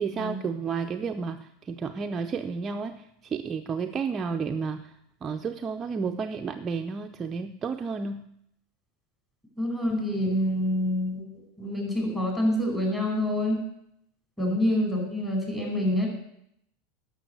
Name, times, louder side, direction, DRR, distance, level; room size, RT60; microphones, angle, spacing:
voice 1, 0.0-4.9 5.2-8.2 14.4-14.6, right 5 dB, 25° right, 5 dB, 0.6 m, -31 dB
voice 2, 9.6-11.2 11.6-13.6 14.4-16.1, left 1 dB, 10° left, 0 dB, 5.1 m, -26 dB
11.0 x 6.8 x 9.4 m, 0.75 s
supercardioid pair, 135°, 0 cm